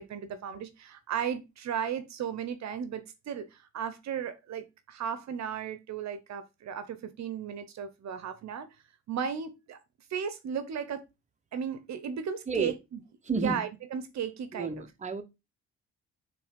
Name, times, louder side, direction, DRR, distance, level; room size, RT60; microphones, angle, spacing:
voice 1, 0.0-8.7 9.1-9.8 10.1-11.0 11.5-12.7 13.4-14.9, right 8 dB, 65° right, 0.9 m, -35 dB
voice 2, 13.2-13.6 14.5-15.2, right 4 dB, 25° right, 1.1 m, -31 dB
6.8 x 3.3 x 5.1 m
cardioid pair, 90°, 30 cm